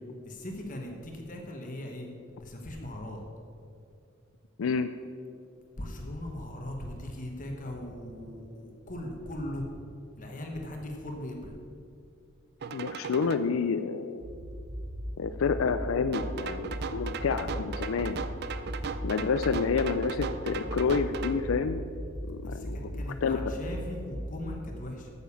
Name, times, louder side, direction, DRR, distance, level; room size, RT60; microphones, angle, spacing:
voice 1, 0.2-2.1 2.4-3.2 5.7-9.7 10.2-11.5 22.4-25.1, left 1 dB, 40° left, 1 dB, 1.2 m, -39 dB
voice 2, 4.6-4.9 12.7-14.2 15.2-18.2 19.0-21.8 22.3-23.4, left 5 dB, 85° left, 9 dB, 0.4 m, -29 dB
sound 1, 12.6-13.4 16.1-21.4, right 5 dB, 50° right, 0.5 m, -37 dB
sound 2, 14.2-24.5, equal, 30° right, 2.9 m, -38 dB
9.1 x 6.9 x 7.0 m, 2.4 s
head